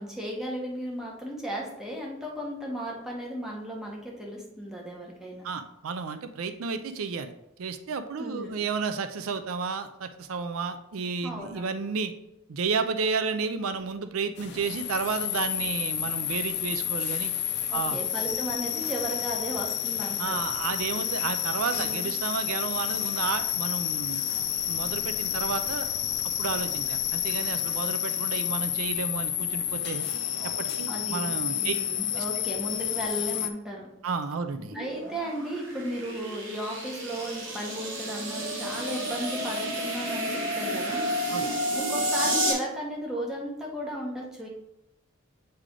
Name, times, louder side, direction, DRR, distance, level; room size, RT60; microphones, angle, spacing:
voice 1, 0.0-5.5 8.2-8.6 11.2-11.7 17.7-20.4 21.7-22.1 30.9-33.9 34.7-41.2 41.7-44.5, equal, 5° right, -3 dB, 1.2 m, -35 dB
voice 2, 5.4-7.3 7.6-12.1 12.5-17.3 17.7-18.0 20.2-24.3 24.7-25.9 26.4-30.1 30.6-31.7 32.1-32.2 34.0-34.8 41.3-41.5, right 5 dB, 85° right, 9 dB, 0.5 m, -32 dB
sound 1, 14.4-33.5, left 10 dB, 55° left, 0.5 m, -30 dB
sound 2, 34.6-42.5, equal, 65° right, 1.5 m, -31 dB
8.6 x 3.3 x 3.8 m, 0.88 s
head